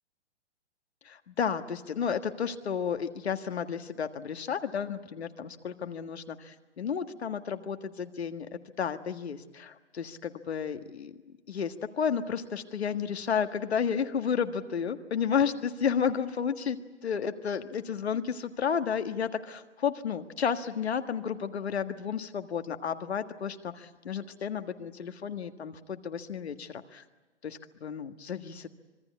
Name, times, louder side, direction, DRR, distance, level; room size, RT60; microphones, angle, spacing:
voice 1, 1.0-27.1 27.4-28.7, left 7 dB, 65° left, 8 dB, 1.7 m, -32 dB
26.0 x 21.5 x 8.4 m, 1.2 s
figure-of-eight pair, 120°, 35 cm